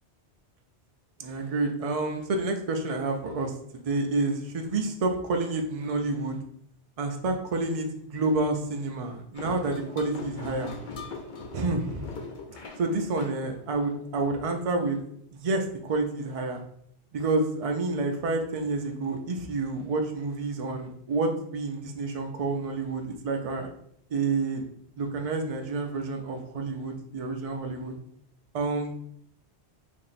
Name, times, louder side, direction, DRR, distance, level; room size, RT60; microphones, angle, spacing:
voice 1, 1.2-6.4 7.0-10.7 11.5-12.1 12.8-15.0 15.3-16.6 17.1-23.7 24.1-24.6 25.0-28.0 28.5-29.0, right 3 dB, 50° right, 3 dB, 0.4 m, -29 dB
sound 1, 9.3-14.2, left 3 dB, 55° left, 0.6 m, -41 dB
2.9 x 2.7 x 4.1 m, 0.70 s
omnidirectional pair, 1.1 m